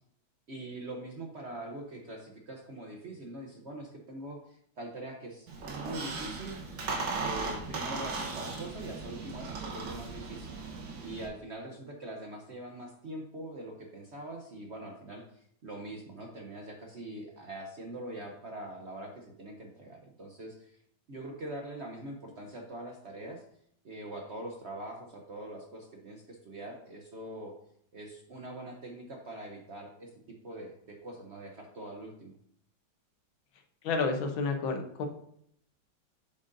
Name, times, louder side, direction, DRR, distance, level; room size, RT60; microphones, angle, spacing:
voice 1, 0.5-6.6 7.2-10.5 11.0-20.8 21.1-23.4 23.8-27.5 27.9-32.3, right 1 dB, 55° right, 1 dB, 0.8 m, -43 dB
Squeak, 5.5-11.3, right 3 dB, 70° right, 1.9 m, -37 dB
voice 2, 33.8-35.1, left 4 dB, 75° left, 4 dB, 1.7 m, -30 dB
7.9 x 7.4 x 2.6 m, 0.69 s
omnidirectional pair, 2.2 m